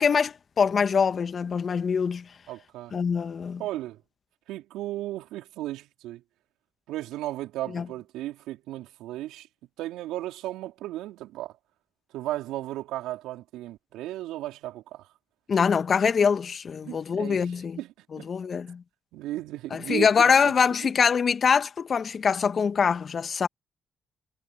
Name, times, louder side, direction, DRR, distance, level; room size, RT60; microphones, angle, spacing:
voice 1, 0.0-2.3 2.9-3.6 7.7-7.9 15.5-17.8 18.1-18.8 19.7-23.5, left 6 dB, 55° left, 1.4 m, -24 dB
voice 2, 2.5-2.9 3.6-4.0 4.5-6.2 6.9-9.5 9.8-11.5 12.1-15.1 16.8-18.3 19.1-20.1 20.8-20.9, right 15 dB, 80° right, 4.0 m, -35 dB
hypercardioid pair, 45°, 0 cm